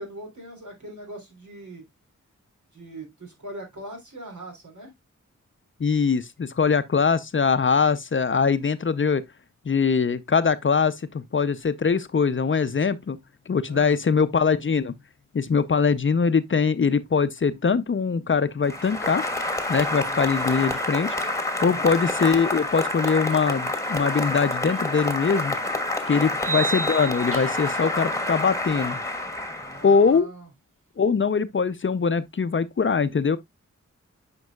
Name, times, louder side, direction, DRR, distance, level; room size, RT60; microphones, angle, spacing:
voice 1, 0.0-1.9 2.7-4.9 13.7-14.0 20.0-20.2 21.6-22.0 26.1-26.4 29.6-30.5, right 1 dB, 75° right, 3.5 m, -41 dB
voice 2, 5.8-9.2 9.7-13.2 13.5-14.9 15.3-19.2 19.7-25.6 26.1-29.0 29.8-30.3 31.0-33.4, left 5 dB, 40° left, 0.5 m, -22 dB
Applause, 18.6-30.1, left 1 dB, 10° left, 1.3 m, -28 dB
sound 1, 24.7-24.8 26.4-27.8, right 3 dB, 45° right, 1.0 m, -31 dB
9.3 x 5.3 x 2.3 m
wide cardioid pair, 75°, 30 cm